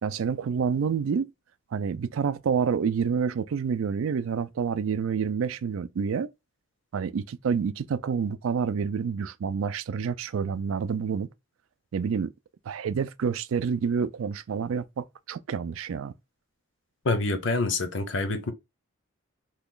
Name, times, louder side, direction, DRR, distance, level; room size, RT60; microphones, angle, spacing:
voice 1, 0.0-1.3 1.7-6.3 6.9-11.3 11.9-12.3 12.7-16.1, right 6 dB, 75° right, 0.4 m, -28 dB
voice 2, 17.1-18.5, left 3 dB, 60° left, 0.6 m, -26 dB
3.0 x 2.3 x 3.7 m
head